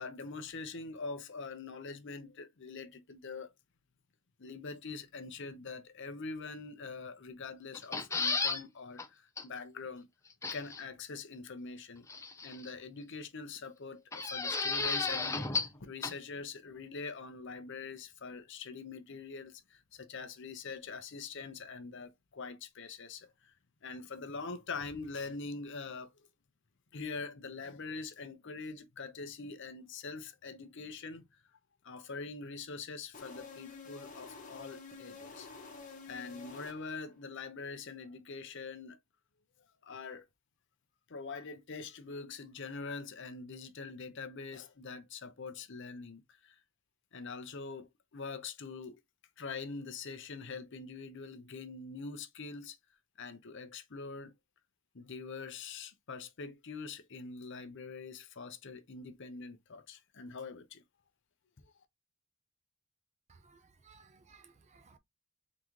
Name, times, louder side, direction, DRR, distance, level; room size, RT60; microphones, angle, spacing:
voice 1, 0.0-3.5 4.4-10.1 10.5-23.5 23.8-26.1 26.9-31.2 31.8-35.5 36.1-39.0 39.8-40.3 41.1-46.6 47.1-49.0 49.4-52.8 53.2-54.3 54.9-60.8, left 4 dB, 55° left, 0.7 m, -44 dB
sound 1, 7.7-8.6 9.0-9.1 9.4-9.5 10.4-10.8 12.1-12.7 14.1-15.8 16.0-16.1, left 4 dB, 15° left, 0.5 m, -33 dB
sound 2, 33.1-37.2, left 4 dB, 35° left, 1.2 m, -49 dB
voice 2, 63.8-65.0, right 5 dB, 30° right, 0.5 m, -60 dB
3.8 x 3.6 x 3.0 m
head